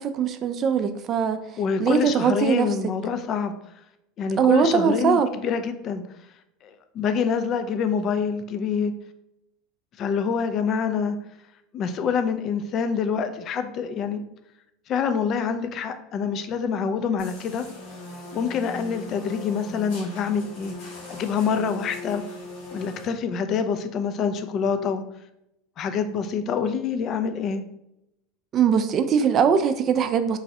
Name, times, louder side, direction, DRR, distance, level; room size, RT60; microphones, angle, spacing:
voice 1, 0.0-1.4 1.8-2.7 4.4-5.3 28.5-30.4, right 7 dB, 40° right, 9 dB, 0.3 m, -21 dB
voice 2, 1.6-3.5 4.2-6.0 6.6-8.9 10.0-11.2 11.7-14.2 14.9-17.7 18.3-20.7 21.1-22.2 22.7-25.0 25.8-27.6, left 6 dB, 45° left, 9 dB, 0.3 m, -26 dB
sound 1, 17.2-23.1, left 2 dB, 75° left, 1.4 m, -40 dB
3.1 x 2.3 x 2.7 m, 0.82 s
supercardioid pair, 105°, 0 cm